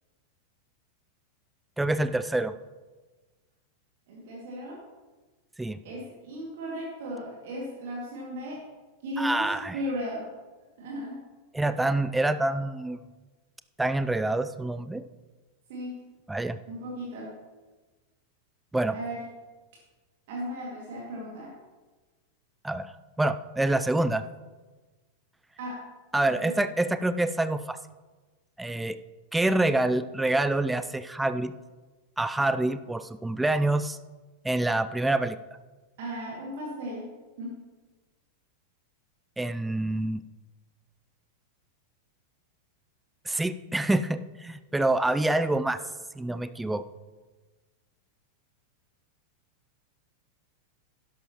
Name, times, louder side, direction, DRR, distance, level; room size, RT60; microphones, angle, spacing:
voice 1, 1.8-2.5 5.6-5.8 9.2-9.8 11.5-13.0 13.8-15.0 16.3-16.6 18.7-19.0 22.6-22.9 23.2-24.2 26.1-27.8 28.6-29.0 29.3-31.5 32.2-34.0 34.4-35.4 39.4-40.2 43.3-45.8 46.2-46.8, right 2 dB, 5° right, 12 dB, 0.4 m, -26 dB
voice 2, 4.1-4.8 5.8-8.6 9.0-10.3 10.8-11.2 15.7-16.0 16.7-17.3 18.9-19.2 20.3-21.5 25.6-25.8 26.2-26.5 36.0-37.1 37.4-37.6, equal, 55° right, -3 dB, 2.2 m, -36 dB
12.5 x 11.0 x 3.0 m, 1.3 s
figure-of-eight pair, 90°, 0 cm